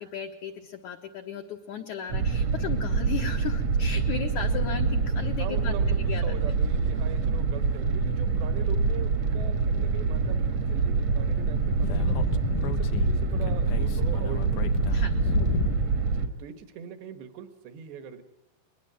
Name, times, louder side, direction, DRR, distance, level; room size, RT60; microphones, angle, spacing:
voice 1, 0.0-6.2 14.9-15.1, left 8 dB, 70° left, 2 dB, 1.8 m, -36 dB
sound 1, 2.1-16.3, right 5 dB, 60° right, 1.9 m, -26 dB
voice 2, 5.4-12.2 12.6-14.7 16.0-18.2, right 8 dB, 75° right, 9 dB, 3.6 m, -41 dB
Speech / Wind, 11.1-16.0, left 5 dB, 85° left, 1.7 m, -30 dB
22.0 x 21.0 x 7.7 m, 0.86 s
omnidirectional pair, 5.0 m